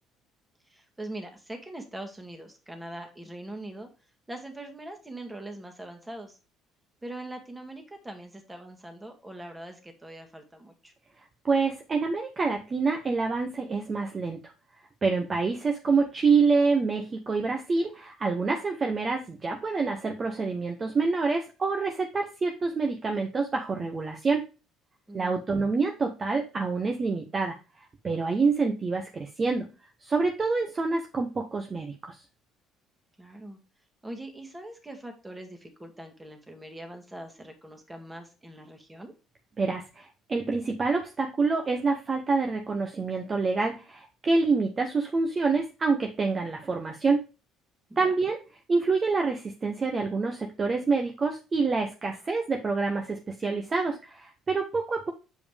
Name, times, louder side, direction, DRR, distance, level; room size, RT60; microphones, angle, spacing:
voice 1, 0.7-3.9 4.3-6.4 7.0-10.9 25.1-25.6 33.2-33.6 34.0-39.1 47.9-48.1, right 1 dB, 15° right, 4 dB, 1.9 m, -42 dB
voice 2, 11.4-14.4 15.0-24.4 25.1-27.5 28.0-29.6 30.0-32.2 39.6-47.2 48.0-48.4 48.7-55.1, right 4 dB, 35° right, 3 dB, 0.9 m, -27 dB
7.2 x 4.9 x 3.4 m, 0.31 s
hypercardioid pair, 55°, 0 cm